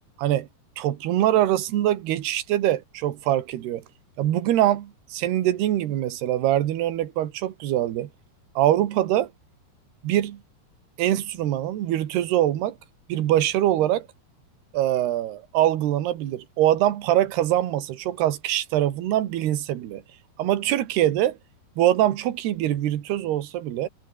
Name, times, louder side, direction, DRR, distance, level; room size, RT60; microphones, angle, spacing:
voice 1, 0.8-3.8 4.2-8.1 8.6-9.3 10.0-10.4 11.0-12.8 13.1-14.1 14.7-20.0 20.4-21.4 21.8-23.9, right 13 dB, 70° right, 3.7 m, -23 dB
omnidirectional pair, 5.0 m